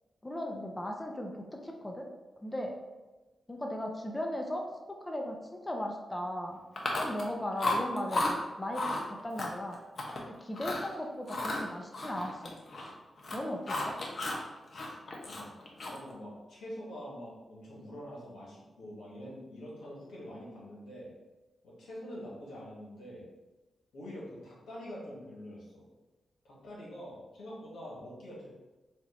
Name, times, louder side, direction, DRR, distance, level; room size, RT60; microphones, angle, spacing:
voice 1, 0.2-2.1 2.4-2.7 3.5-4.7 5.0-5.4 5.6-6.6 7.0-9.8 10.3-12.5 13.3-14.0, left 1 dB, 20° left, 2 dB, 0.7 m, -37 dB
Chewing mastication, 6.8-7.3 7.6-8.3 8.7-9.0 9.4-10.2 10.5-10.9 11.3-12.9 13.2-14.4 14.7-16.1, left 2 dB, 60° left, 0.9 m, -33 dB
voice 2, 15.2-21.1 21.6-23.3 23.9-25.9 26.4-28.5, equal, 90° left, -5 dB, 1.4 m, -45 dB
4.4 x 2.5 x 4.2 m, 1.1 s
cardioid pair, 60°, 0 cm